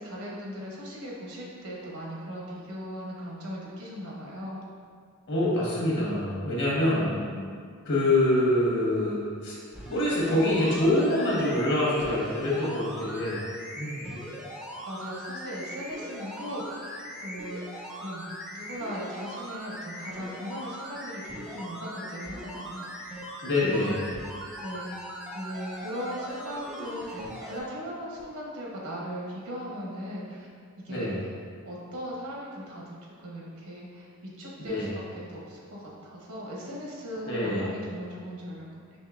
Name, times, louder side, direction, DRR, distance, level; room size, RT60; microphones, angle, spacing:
voice 1, 0.0-4.6 6.9-7.5 14.9-18.2 18.5-23.1 23.6-24.0 24.6-24.9 25.3-30.5 30.8-31.1 31.6-38.7, equal, 75° right, -4 dB, 1.0 m, -38 dB
voice 2, 5.3-7.1 7.8-9.6 9.9-13.4 13.8-14.1 23.4-24.2 30.9-31.2 34.6-34.9 37.3-37.8, left 1 dB, 55° left, -5 dB, 1.1 m, -25 dB
sound 1, 9.7-27.6 28.2-28.3, equal, 5° right, 0.4 m, -40 dB
5.4 x 3.2 x 2.3 m, 2.1 s
head